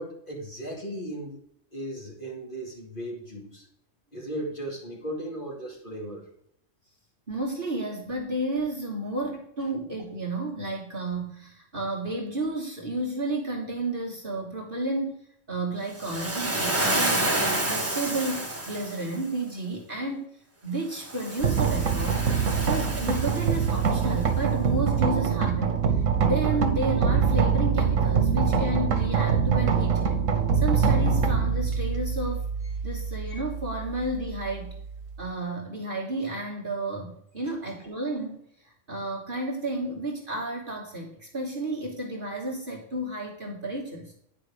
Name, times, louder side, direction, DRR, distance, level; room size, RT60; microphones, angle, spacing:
voice 1, 0.0-1.4 1.7-3.7 4.1-6.3, right 1 dB, 40° left, -2 dB, 2.5 m, -36 dB
voice 2, 7.3-15.2 15.5-20.3 20.6-22.2 22.6-30.2 30.5-32.4 32.8-34.7 35.2-38.4 38.6-44.1, right 2 dB, 45° right, -1 dB, 1.5 m, -32 dB
Waves surf, 16.0-19.2 21.0-24.0, right 1 dB, 10° right, 1.3 m, -29 dB
sound 1, 21.4-35.3, right 6 dB, 85° right, 1.4 m, -24 dB
9.3 x 5.0 x 4.9 m, 0.70 s
omnidirectional pair, 1.3 m